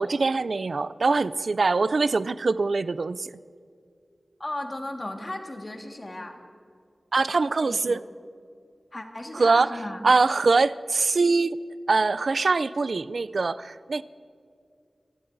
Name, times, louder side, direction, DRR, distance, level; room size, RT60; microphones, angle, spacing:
voice 1, 0.0-3.3 7.1-8.0 9.3-9.8 10.0-11.6 11.9-14.0, right 3 dB, 70° right, 16 dB, 0.3 m, -23 dB
voice 2, 4.4-6.4 7.6-8.0 8.9-10.1, left 1 dB, 35° left, 3 dB, 1.7 m, -36 dB
25.0 x 16.5 x 2.6 m, 2.3 s
wide cardioid pair, 75°, 0 cm